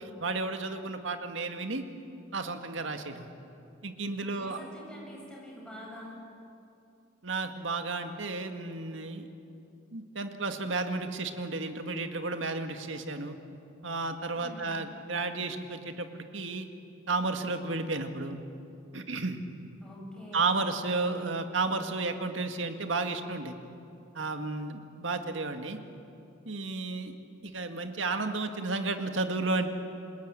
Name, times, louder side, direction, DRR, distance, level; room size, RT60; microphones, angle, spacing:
voice 1, 0.2-1.8 2.3-3.3 3.8-4.6 7.2-9.3 9.9-13.4 13.8-16.7 17.1-18.4 18.9-19.4 20.3-23.6 24.1-25.8 26.5-27.1 27.4-29.7, right 3 dB, 70° right, 6 dB, 2.0 m, -32 dB
voice 2, 4.3-6.2 14.3-14.7 19.8-20.5, equal, 5° left, -3 dB, 7.8 m, -46 dB
28.5 x 21.0 x 9.0 m, 2.7 s
head